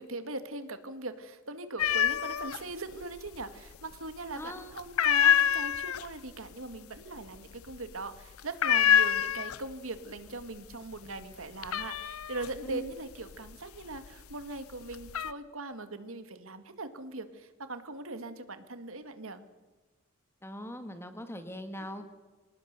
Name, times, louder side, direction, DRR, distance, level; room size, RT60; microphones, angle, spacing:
voice 1, 0.0-19.4 21.8-21.9, right 2 dB, 80° right, 9 dB, 1.9 m, -40 dB
sound 1, 1.8-2.6 2.9-3.7 4.0-4.4 4.8-9.9 10.2-10.7 11.1-14.2 14.7-15.3, left 9 dB, 90° left, 0.7 m, -26 dB
voice 2, 4.3-4.7 12.6-12.8 20.4-22.0, equal, 10° left, 8 dB, 1.8 m, -40 dB
26.5 x 19.0 x 6.8 m, 1.2 s
head